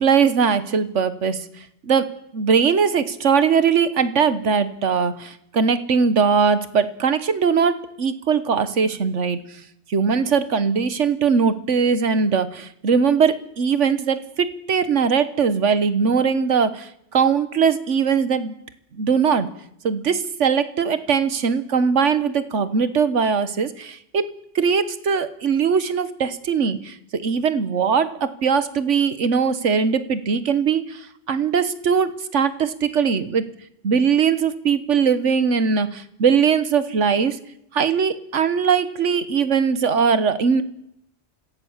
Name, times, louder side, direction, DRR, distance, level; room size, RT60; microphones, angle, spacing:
voice 1, 0.0-1.4 1.9-9.4 9.9-18.5 18.9-19.5 19.8-24.2 24.5-33.5 33.8-37.4 37.7-40.6, right 6 dB, 75° right, 13 dB, 1.5 m, -20 dB
25.5 x 16.5 x 7.3 m, 0.79 s
omnidirectional pair, 1.2 m